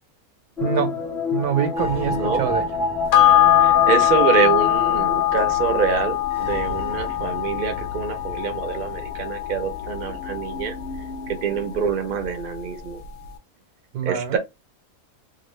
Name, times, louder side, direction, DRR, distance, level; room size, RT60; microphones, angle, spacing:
sound 1, 0.6-6.5 6.8-6.9, left 4 dB, 5° left, 0.3 m, -28 dB
voice 1, 0.6-1.0 1.3-2.7 13.9-14.4, right 8 dB, 80° right, 1.3 m, -24 dB
sound 2, 1.8-11.8, left 3 dB, 60° left, 0.5 m, -39 dB
voice 2, 2.1-2.5 3.6-10.7 11.3-13.0 14.0-14.4, right 6 dB, 50° right, 0.7 m, -25 dB
sound 3, 3.1-11.9 12.2-12.3, left 13 dB, 75° left, 1.0 m, -22 dB
2.9 x 2.3 x 3.1 m
omnidirectional pair, 1.6 m